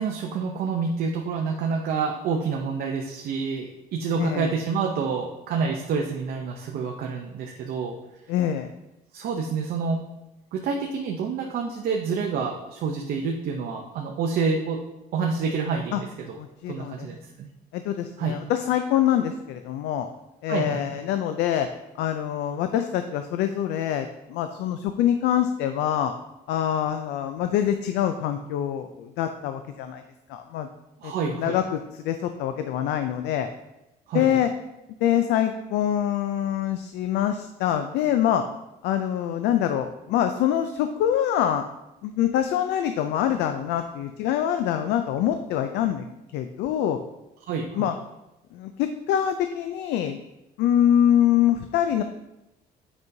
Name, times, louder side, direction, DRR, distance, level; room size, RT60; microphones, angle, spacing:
voice 1, 0.0-8.0 9.1-10.0 10.5-14.8 15.1-16.3 16.7-17.5 18.2-18.4 20.5-20.8 31.0-31.6 34.1-34.4 47.5-47.9, right 5 dB, 65° right, 1 dB, 0.7 m, -28 dB
voice 2, 4.2-4.5 8.3-8.7 15.9-16.0 16.4-17.1 17.7-20.1 20.4-21.7 22.0-26.1 26.5-30.0 30.3-30.7 31.0-33.5 34.1-34.5 35.0-38.4 38.8-41.7 42.0-46.0 46.3-47.0 47.7-47.9 48.5-50.2 50.6-52.0, left 10 dB, 85° left, 8 dB, 0.4 m, -25 dB
7.9 x 5.4 x 2.7 m, 0.95 s
cardioid pair, 110°, 17 cm